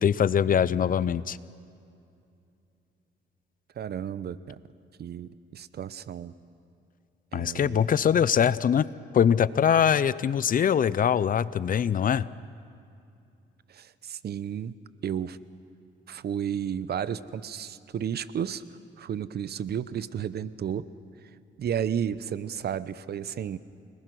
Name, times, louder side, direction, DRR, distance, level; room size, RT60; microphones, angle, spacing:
voice 1, 0.0-1.4 7.3-8.9 9.1-12.3, left 8 dB, 45° left, 18 dB, 0.6 m, -23 dB
voice 2, 3.8-4.6 5.0-6.3 7.3-7.9 13.7-14.7 15.0-15.4 16.1-18.6 19.0-20.9 21.6-23.6, right 8 dB, 55° right, 16 dB, 0.8 m, -32 dB
30.0 x 20.0 x 6.2 m, 2.6 s
cardioid pair, 90°, 20 cm